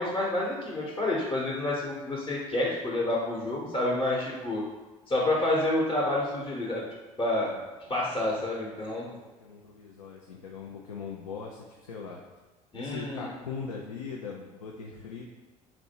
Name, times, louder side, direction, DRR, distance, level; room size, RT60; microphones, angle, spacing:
voice 1, 0.0-4.6 5.1-6.8 7.2-7.5 7.9-9.1 12.7-13.3, left 1 dB, 30° left, -4 dB, 1.0 m, -28 dB
voice 2, 8.9-12.2 12.7-15.2, left 5 dB, 80° left, -1 dB, 0.5 m, -41 dB
4.2 x 2.6 x 4.3 m, 1.2 s
figure-of-eight pair, 60°, 18 cm